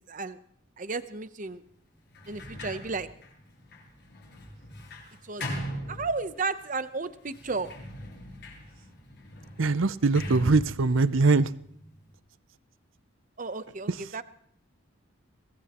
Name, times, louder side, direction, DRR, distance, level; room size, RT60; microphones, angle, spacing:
voice 1, 0.1-0.4 0.8-1.6 2.3-3.1 5.2-5.6 5.9-7.7 13.4-14.2, right 3 dB, 40° right, 12 dB, 0.9 m, -33 dB
Sliding door, 2.1-6.6 7.2-12.1, equal, 55° left, 7.4 m, -41 dB
voice 2, 9.6-11.5, right 3 dB, 80° right, 16 dB, 0.7 m, -22 dB
23.5 x 18.5 x 3.0 m, 0.64 s
head